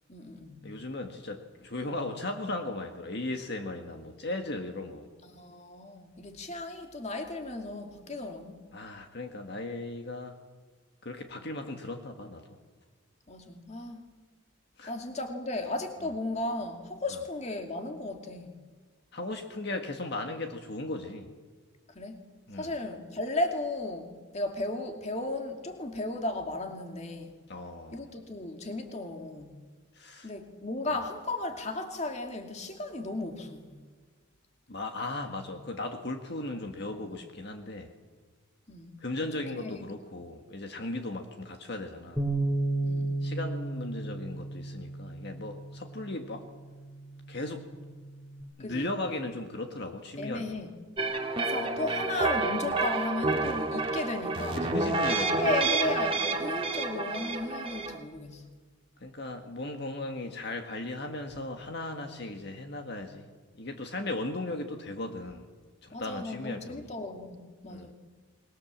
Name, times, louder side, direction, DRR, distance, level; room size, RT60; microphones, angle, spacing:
voice 1, 0.1-0.7 5.2-8.6 13.3-14.0 14.9-18.6 21.9-22.2 22.5-27.4 27.9-29.5 30.2-33.7 37.0-37.1 38.7-38.9 39.5-39.8 42.8-43.2 48.6-48.9 50.2-50.7 51.4-54.7 55.0-58.5 65.9-67.9, left 2 dB, 30° left, 4 dB, 2.3 m, -35 dB
voice 2, 0.6-5.1 8.7-10.3 11.0-12.4 14.8-14.9 19.1-21.3 22.5-22.7 27.5-28.1 29.9-30.3 34.7-37.9 39.0-42.2 43.2-46.5 47.3-47.7 48.6-50.4 54.6-55.6 59.0-63.3 63.5-65.4 65.8-66.9 67.7-67.9, left 2 dB, 50° left, 4 dB, 1.8 m, -37 dB
Bass guitar, 42.2-48.4, right 2 dB, 10° left, 3.9 m, -34 dB
sound 1, 51.0-58.0, right 3 dB, 25° right, 1.7 m, -29 dB
26.0 x 21.0 x 7.4 m, 1.5 s
head